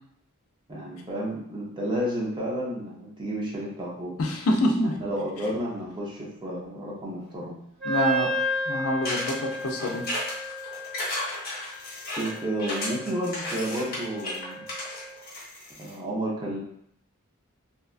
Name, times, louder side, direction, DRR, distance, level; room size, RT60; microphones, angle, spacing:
voice 1, 0.7-4.1 4.8-7.6 12.1-14.6 15.8-16.6, right 1 dB, 20° right, -4 dB, 0.6 m, -31 dB
voice 2, 4.2-4.9 7.8-8.3 8.7-10.0, left 1 dB, 70° left, 1 dB, 0.4 m, -25 dB
Wind instrument woodwind instrument, 7.8-15.1, right 1 dB, 5° left, 0.8 m, -33 dB
sound 1, 9.0-15.9, left 1 dB, 45° left, 1.0 m, -34 dB
2.8 x 2.2 x 2.4 m, 0.71 s
head